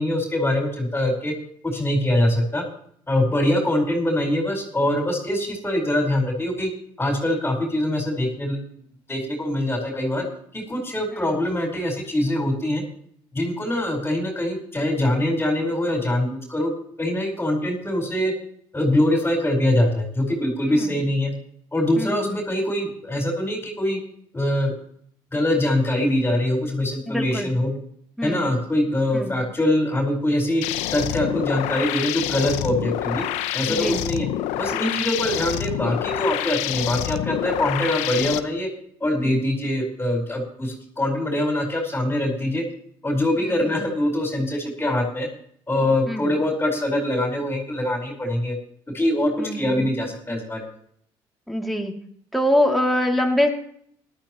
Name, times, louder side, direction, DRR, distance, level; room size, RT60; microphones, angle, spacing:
voice 1, 0.0-1.3 1.6-2.6 3.1-6.7 7.0-8.6 9.1-10.3 10.5-12.8 13.3-16.7 17.0-18.3 18.7-21.3 21.7-24.0 24.3-24.7 25.3-27.7 28.2-30.6 30.9-33.2 33.5-34.3 34.6-38.7 39.0-42.6 43.0-45.3 45.7-48.6 48.9-50.7, left 1 dB, 15° left, -2 dB, 4.6 m, -23 dB
voice 2, 22.0-22.4 27.1-27.5 28.2-28.5 29.1-29.4 33.7-34.0 43.4-43.7 46.1-46.3 49.4-49.9 51.5-51.9 52.3-53.5, left 1 dB, ahead, 0 dB, 2.8 m, -24 dB
sound 1, 30.6-38.4, left 14 dB, 85° left, 0.8 m, -27 dB
18.5 x 12.5 x 3.1 m, 0.65 s
supercardioid pair, 85°, 11 cm